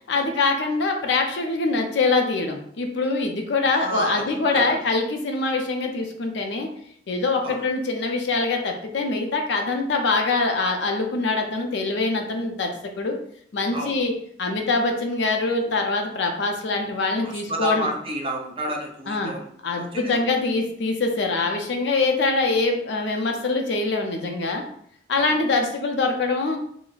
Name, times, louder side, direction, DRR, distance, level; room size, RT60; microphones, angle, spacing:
voice 1, 0.1-6.7 7.1-12.7 13.0-13.2 13.5-14.1 14.4-17.9 19.1-19.3 19.6-24.6 25.1-26.6, left 3 dB, 70° left, 3 dB, 0.5 m, -24 dB
voice 2, 3.7-4.8 7.4-7.7 13.7-14.0 17.2-19.5 19.8-20.2 25.2-25.3, right 1 dB, 30° right, 0 dB, 0.5 m, -30 dB
3.9 x 2.0 x 2.4 m, 0.67 s
head